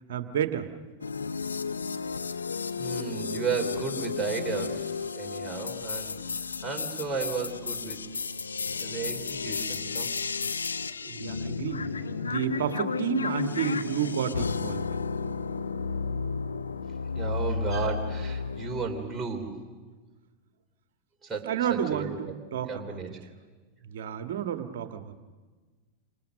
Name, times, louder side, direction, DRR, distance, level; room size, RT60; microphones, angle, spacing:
voice 1, 0.1-0.7 11.1-11.9 12.2-14.9 21.4-23.0 23.8-25.1, right 9 dB, 55° right, 8 dB, 1.8 m, -31 dB
sound 1, 1.0-19.0, left 5 dB, 75° left, 0.8 m, -33 dB
voice 2, 2.8-6.2 6.6-8.0 8.8-10.1 17.2-19.6 21.2-22.3 22.7-23.1, right 5 dB, 15° right, 0 dB, 3.6 m, -34 dB
sound 2, 11.0-16.7, equal, 90° left, 5.3 m, -45 dB
29.0 x 27.0 x 6.6 m, 1.4 s
figure-of-eight pair, 90°, 0 cm